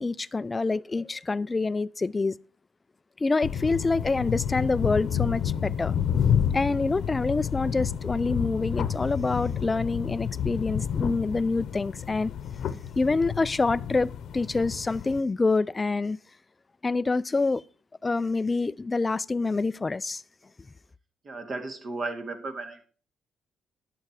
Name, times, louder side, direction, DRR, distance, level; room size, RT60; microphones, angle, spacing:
voice 1, 0.0-2.4 3.2-5.9 6.5-12.3 13.0-16.2 16.8-17.6 18.0-20.2, left 3 dB, 25° left, 0.4 m, -26 dB
sound 1, 3.4-15.2, left 8 dB, 70° left, 1.0 m, -30 dB
voice 2, 21.2-22.8, right 3 dB, 45° right, 2.2 m, -34 dB
11.5 x 7.8 x 4.8 m
cardioid pair, 90°, 0 cm